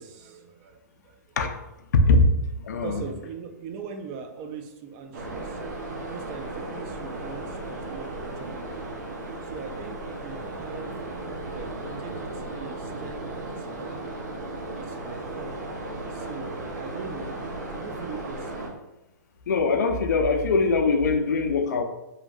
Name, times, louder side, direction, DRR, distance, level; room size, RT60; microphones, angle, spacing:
voice 1, 0.0-1.4 2.8-5.6 5.9-8.9 9.4-11.1 11.5-14.1 14.5-15.6 16.1-18.8, right 6 dB, 35° right, 5 dB, 0.4 m, -41 dB
voice 2, 2.6-3.1 19.5-21.8, left 4 dB, 75° left, 6 dB, 0.4 m, -22 dB
sound 1, 5.1-18.7, right 2 dB, 75° right, 0.7 m, -35 dB
2.8 x 2.6 x 2.3 m, 0.95 s
hypercardioid pair, 135°, 10 cm